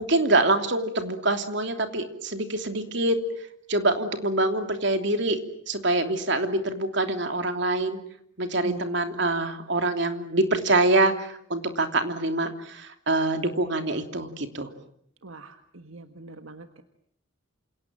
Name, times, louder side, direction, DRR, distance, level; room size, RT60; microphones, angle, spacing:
voice 1, 0.0-3.2 3.7-5.4 5.7-8.0 8.4-14.7, right 2 dB, 60° right, 6 dB, 3.0 m, -25 dB
voice 2, 15.2-16.8, right 2 dB, 75° right, 7 dB, 1.5 m, -41 dB
28.0 x 27.5 x 7.7 m, 0.69 s
head